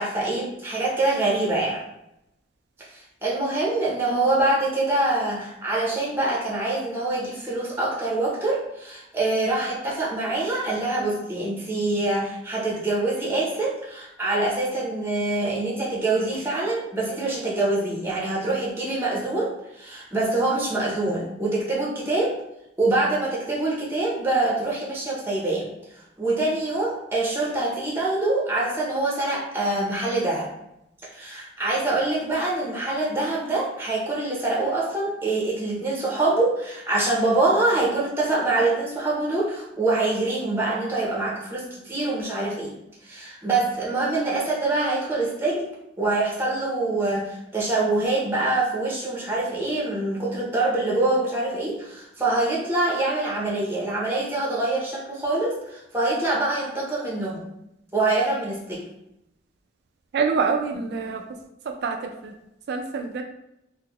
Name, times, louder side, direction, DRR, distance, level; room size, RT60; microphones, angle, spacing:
voice 1, 0.0-1.8 3.2-19.5 19.8-22.3 22.8-25.7 26.2-30.5 31.1-42.7 43.0-45.7 46.0-57.4 57.9-58.8 60.7-60.9, right 2 dB, 10° right, -4 dB, 0.6 m, -25 dB
voice 2, 60.1-61.2 61.8-62.0 62.7-63.2, right 5 dB, 60° right, 4 dB, 0.3 m, -25 dB
3.7 x 2.0 x 2.9 m, 0.84 s
head